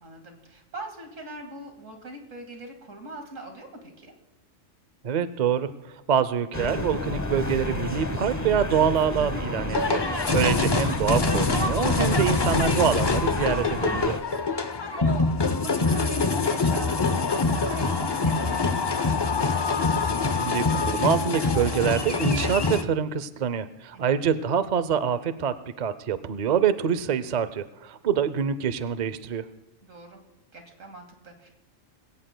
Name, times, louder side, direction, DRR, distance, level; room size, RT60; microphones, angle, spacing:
voice 1, 0.0-4.1 10.3-10.5 14.7-19.2 23.9-24.3 29.8-30.2 30.5-31.5, right 1 dB, 80° right, 4 dB, 2.4 m, -42 dB
voice 2, 5.0-10.0 10.3-14.2 20.4-29.4, right 7 dB, 50° right, 14 dB, 0.5 m, -25 dB
sound 1, 6.5-14.2, left 2 dB, 15° left, 0.9 m, -31 dB
sound 2, 9.7-22.8, left 3 dB, 30° left, 0.5 m, -25 dB
21.5 x 17.0 x 2.2 m, 1.0 s
omnidirectional pair, 1.3 m